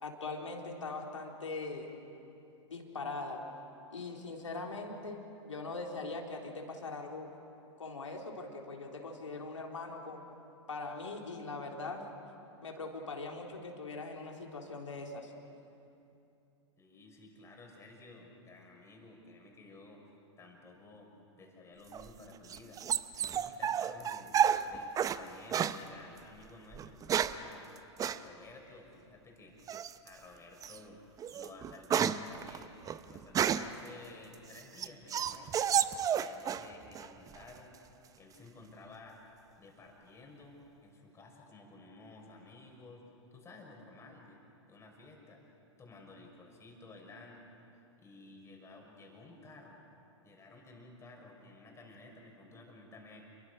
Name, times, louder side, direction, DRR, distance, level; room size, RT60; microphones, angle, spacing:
voice 1, 0.0-1.9 2.7-3.4 3.9-7.3 7.8-10.2 10.7-12.1 12.6-15.3, left 3 dB, 85° left, 1 dB, 3.6 m, -41 dB
voice 2, 16.8-20.0 20.4-21.1 21.4-22.8 23.2-24.4 24.7-27.7 28.0-29.6 30.0-31.0 31.3-32.7 33.0-35.9 36.1-37.7 38.1-39.2 39.6-45.4 45.8-47.5 48.0-49.9 50.2-53.2, left 3 dB, 15° left, 0 dB, 6.1 m, -54 dB
sound 1, 21.9-25.2 25.5-25.8 26.7-27.5 28.0-28.2 29.7-30.1 30.6-30.8 31.2-33.8 34.3-36.7 37.0-37.6, right 9 dB, 20° right, 0.7 m, -31 dB
28.5 x 23.0 x 6.4 m, 2.8 s
hypercardioid pair, 110°, 15 cm